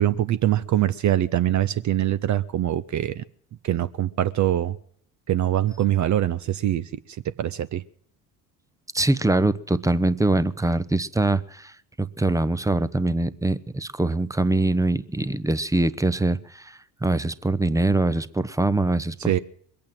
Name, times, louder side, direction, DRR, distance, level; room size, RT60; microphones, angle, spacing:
voice 1, 0.0-3.2 3.6-4.8 5.3-6.9 7.4-7.8 19.3-19.4, right 12 dB, 35° right, 0.7 m, -23 dB
voice 2, 8.9-11.7 12.0-19.4, right 2 dB, 5° right, 0.7 m, -23 dB
22.0 x 8.6 x 7.6 m
hypercardioid pair, 60°, 48 cm